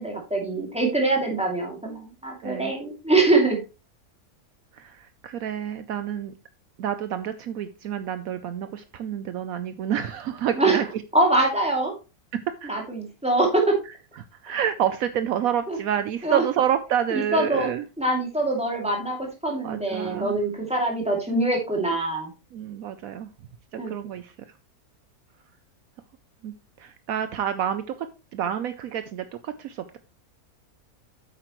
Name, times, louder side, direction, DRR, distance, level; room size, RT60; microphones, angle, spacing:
voice 1, 0.0-3.6 10.6-10.8 11.1-11.9 12.6-13.7 15.7-15.8 16.2-16.4 17.1-17.7 18.0-22.3 23.8-23.9, right 2 dB, 5° right, -1 dB, 2.5 m, -24 dB
voice 2, 2.4-2.7 4.7-6.3 6.8-10.8 12.3-12.7 14.2-17.8 19.6-20.3 22.5-23.3 23.9-24.3 26.4-30.0, right 9 dB, 70° right, 10 dB, 1.0 m, -28 dB
9.0 x 7.5 x 3.1 m, 0.30 s
omnidirectional pair, 1.6 m